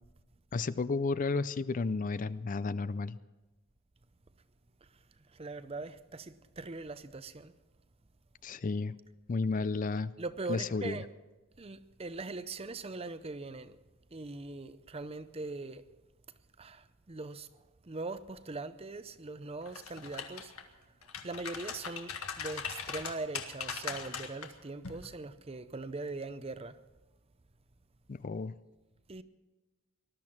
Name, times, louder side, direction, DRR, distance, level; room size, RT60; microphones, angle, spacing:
voice 1, 0.5-3.2 8.4-9.0 9.3-10.1 10.5-11.0 28.1-28.5, left 4 dB, 35° left, 0.4 m, -32 dB
voice 2, 5.3-7.5 10.2-11.1 11.6-13.8 14.1-15.8 16.6-17.5 17.8-20.5 21.2-26.8 29.1-29.2, right 3 dB, 25° right, 0.6 m, -41 dB
sound 1, 19.7-20.6 21.0-24.5 24.8-25.1, left 6 dB, 80° left, 1.7 m, -40 dB
19.5 x 12.5 x 5.9 m
head